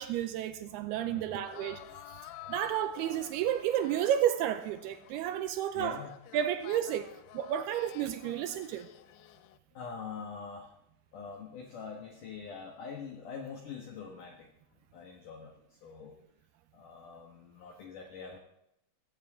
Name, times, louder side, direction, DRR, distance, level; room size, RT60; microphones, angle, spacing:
voice 1, 0.0-1.8 2.1-6.0 6.3-8.9, right 10 dB, 80° right, 10 dB, 2.5 m, -32 dB
voice 2, 1.1-1.5 5.7-6.2 9.7-10.8 11.1-14.5 14.9-16.1 16.7-18.4, left 5 dB, 60° left, 2 dB, 2.4 m, -44 dB
sound 1, 1.5-9.6, left 15 dB, 80° left, 2.7 m, -51 dB
18.0 x 16.5 x 3.6 m, 0.81 s
omnidirectional pair, 4.8 m